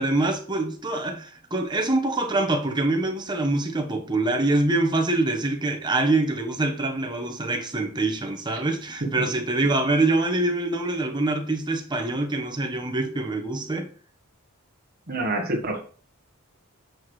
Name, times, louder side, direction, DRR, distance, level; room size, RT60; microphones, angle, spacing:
voice 1, 0.0-13.9, right 2 dB, 20° right, 1.2 m, -25 dB
voice 2, 15.1-15.8, right 2 dB, 45° right, 1.4 m, -27 dB
8.5 x 6.2 x 3.3 m
head